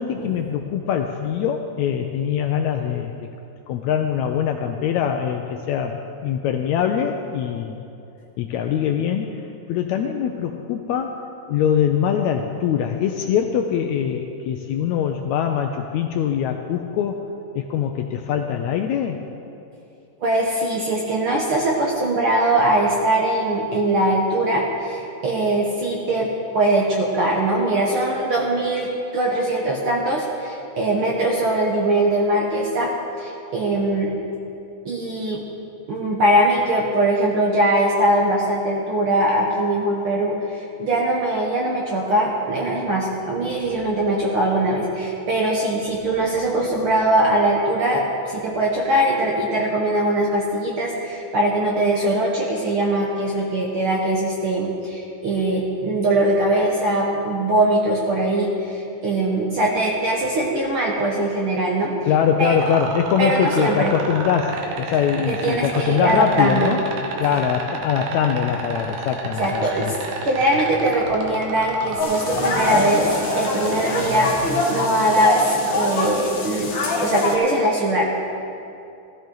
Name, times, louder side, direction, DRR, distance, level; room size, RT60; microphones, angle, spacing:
voice 1, 0.0-3.1 3.7-7.8 8.4-9.4 9.7-11.2 11.5-17.3 17.5-19.3 62.1-66.8 67.2-70.0, left 8 dB, 80° left, 5 dB, 1.7 m, -23 dB
voice 2, 20.2-32.9 33.2-34.1 34.8-35.4 35.9-62.1 62.4-62.7 63.2-63.9 65.3-66.8 69.4-76.7 77.0-78.0, right 1 dB, 60° right, -2 dB, 1.5 m, -21 dB
sound 1, 62.6-74.7 76.4-76.5, right 4 dB, 80° right, 2.8 m, -31 dB
sound 2, 72.0-77.3, left 2 dB, 45° left, 1.8 m, -24 dB
16.0 x 13.5 x 3.9 m, 2.7 s
omnidirectional pair, 3.7 m